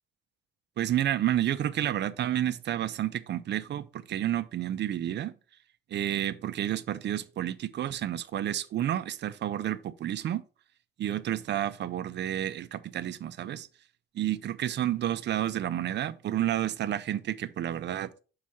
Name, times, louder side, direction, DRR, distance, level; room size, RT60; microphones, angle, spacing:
voice 1, 0.8-5.3 5.9-10.4 11.0-13.7 14.1-18.1, right 11 dB, 60° right, 0.5 m, -30 dB
6.3 x 4.7 x 4.1 m
cardioid pair, 130°, 20 cm